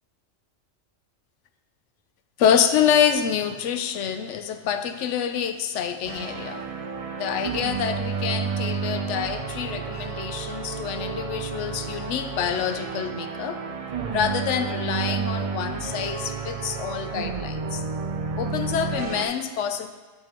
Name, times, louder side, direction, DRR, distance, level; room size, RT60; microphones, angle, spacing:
voice 1, 2.4-6.6 7.2-13.6 14.1-17.8 18.4-19.9, left 8 dB, 75° left, 8 dB, 0.9 m, -26 dB
sound 1, 6.1-19.3, right 5 dB, 65° right, 0.3 m, -31 dB
7.6 x 7.1 x 2.9 m, 1.4 s
omnidirectional pair, 1.3 m